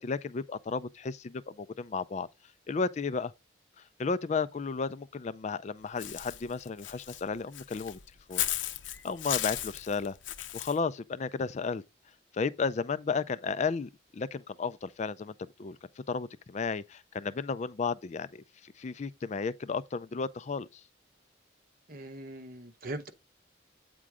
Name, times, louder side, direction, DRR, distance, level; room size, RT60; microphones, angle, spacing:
voice 1, 0.0-2.3 2.7-3.3 4.0-8.0 8.3-8.4 9.0-10.1 10.5-11.8 12.3-15.8 16.1-20.8, left 5 dB, 40° left, 0.4 m, -33 dB
Walk footsteps / Bird, 6.0-10.8, left 12 dB, 90° left, 0.7 m, -36 dB
voice 2, 21.9-23.1, right 2 dB, 50° right, 1.0 m, -40 dB
8.5 x 3.7 x 4.8 m
head